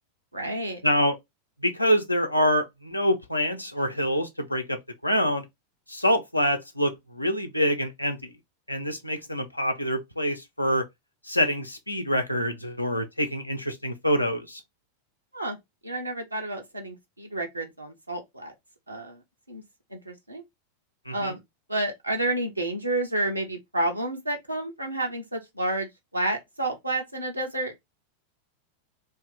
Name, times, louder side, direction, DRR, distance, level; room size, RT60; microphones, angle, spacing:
voice 1, 0.3-0.8 15.3-15.6 15.8-18.5 18.9-19.2 19.5-19.6 19.9-20.4 21.1-21.4 21.7-27.7, right 1 dB, 85° right, 0.9 m, -30 dB
voice 2, 0.8-1.1 1.6-5.4 5.9-8.3 8.7-10.8 11.3-14.6 21.1-21.3, equal, 85° left, 0.7 m, -26 dB
2.8 x 2.8 x 3.7 m
figure-of-eight pair, 90°, 0 cm